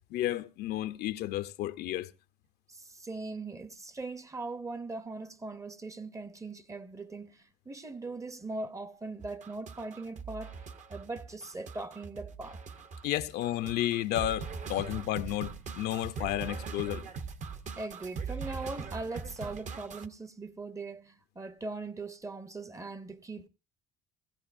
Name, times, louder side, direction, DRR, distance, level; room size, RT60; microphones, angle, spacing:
voice 1, 0.1-2.1 13.0-17.0, left 14 dB, 75° left, 0.7 m, -32 dB
voice 2, 2.7-10.6 10.9-12.6 17.7-23.5, right 3 dB, 20° right, 0.7 m, -40 dB
sound 1, 9.2-20.1, right 5 dB, 45° right, 0.9 m, -41 dB
16.5 x 15.5 x 2.6 m
cardioid pair, 110°, 17 cm